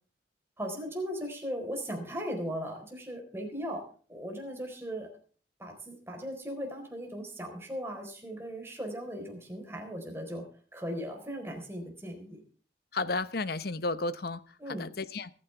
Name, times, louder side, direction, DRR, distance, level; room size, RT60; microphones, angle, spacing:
voice 1, 0.6-3.8 4.1-5.1 5.6-10.5 10.7-12.4 14.6-14.9, equal, 15° right, 2 dB, 4.2 m, -38 dB
voice 2, 12.9-15.3, left 3 dB, 55° left, 14 dB, 0.9 m, -33 dB
24.0 x 9.7 x 3.4 m, 0.42 s
head